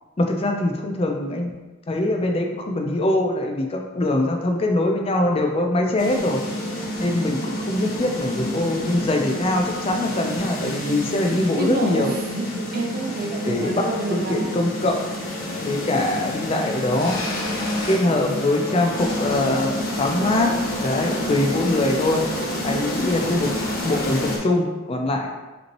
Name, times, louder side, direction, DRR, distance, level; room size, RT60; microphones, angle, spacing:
voice 1, 0.2-1.6 1.9-6.4 7.0-12.1 13.5-13.8 14.1-15.0 15.6-17.2 17.9-20.5 20.8-22.2 22.6-23.5 23.8-25.3, left 1 dB, 30° left, 2 dB, 0.4 m, -23 dB
sound 1, 6.0-24.4, left 1 dB, 45° left, 1.2 m, -29 dB
voice 2, 11.5-14.5, right 2 dB, 45° right, 2 dB, 0.6 m, -28 dB
5.1 x 3.1 x 2.9 m, 1.2 s
head